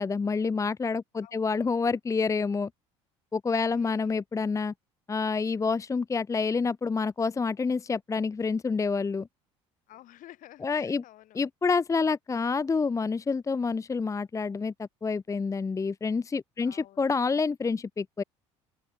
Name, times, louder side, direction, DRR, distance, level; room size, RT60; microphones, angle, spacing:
voice 1, 0.0-2.7 3.3-4.7 5.1-9.3 10.6-11.0 11.3-18.2, left 4 dB, 20° left, 0.6 m, -28 dB
voice 2, 1.2-1.7 3.7-4.2 9.9-11.4 16.6-17.1, left 14 dB, 60° left, 4.5 m, -52 dB
open air
hypercardioid pair, 65°, 16 cm